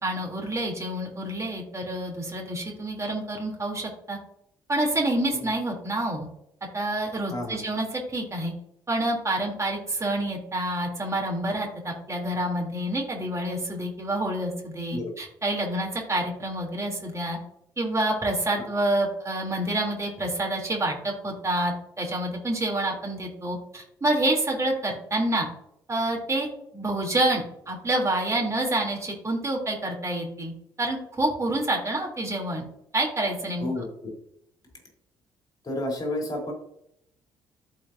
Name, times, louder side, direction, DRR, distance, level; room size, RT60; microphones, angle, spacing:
voice 1, 0.0-4.2 4.7-6.3 6.7-8.5 8.9-17.4 17.8-25.5 25.9-26.5 26.7-30.5 30.8-32.7 32.9-33.6, right 1 dB, 25° right, -1 dB, 3.2 m, -28 dB
voice 2, 7.3-7.6 14.9-15.1 18.6-18.7 33.6-34.1 35.6-36.5, left 1 dB, 35° left, 0 dB, 3.5 m, -31 dB
14.5 x 5.2 x 2.7 m, 0.74 s
hypercardioid pair, 45°, 11 cm